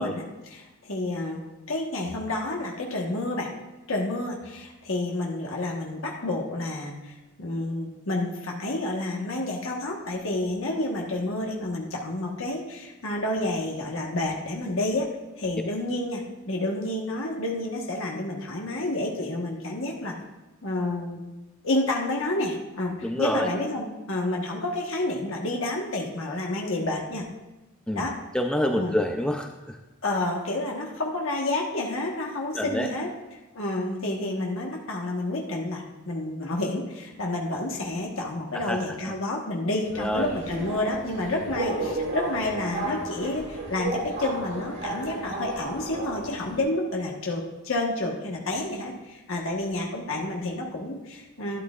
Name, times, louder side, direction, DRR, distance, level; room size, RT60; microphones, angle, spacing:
voice 1, 0.0-1.4 1.7-3.5 3.9-20.2 20.6-21.2 21.6-27.3 27.9-28.2 28.7-29.0 30.0-51.6, left 2 dB, 60° left, -1 dB, 1.3 m, -29 dB
voice 2, 23.0-23.5 27.9-28.1 28.3-29.8 32.5-32.9 38.7-38.8 40.0-40.3, equal, 5° left, 4 dB, 0.4 m, -26 dB
Subway metro underground, 39.8-46.6, right 2 dB, 55° right, 3.7 m, -33 dB
12.5 x 11.5 x 2.4 m, 1.1 s
head